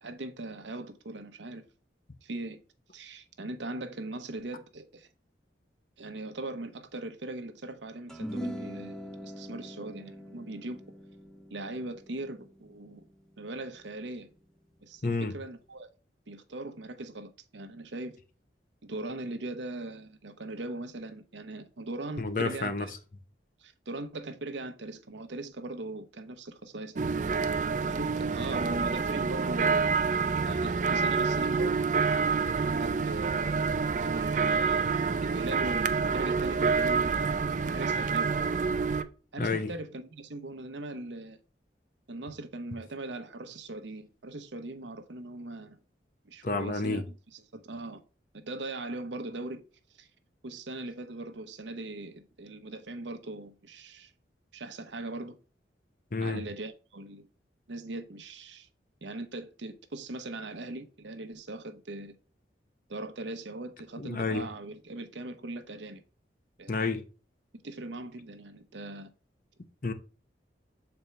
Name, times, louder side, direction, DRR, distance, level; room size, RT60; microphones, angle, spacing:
voice 1, 0.0-1.6 2.2-2.6 2.9-5.1 6.0-10.8 11.5-13.0 13.4-14.3 14.8-15.9 16.3-18.2 18.8-22.9 23.6-30.0 30.5-31.8 32.5-34.8 35.2-37.3 37.6-38.3 39.3-41.4 42.1-45.8 46.2-47.0 47.3-48.0 48.3-49.6 50.0-50.1 50.4-54.1 54.5-55.4 56.2-57.3 57.7-58.7 59.0-62.1 62.9-66.0 66.6-66.7 67.6-69.1, right 2 dB, 85° right, 0.9 m, -40 dB
sound 1, 8.1-14.6, equal, 5° left, 0.6 m, -42 dB
voice 2, 15.0-15.3 22.2-22.9 39.4-39.7 46.4-47.0 56.1-56.4 64.0-64.5 66.7-67.0 69.8-69.9, left 3 dB, 50° left, 0.7 m, -30 dB
sound 2, 27.0-39.0, right 5 dB, 45° right, 0.4 m, -27 dB
7.0 x 4.4 x 3.2 m
head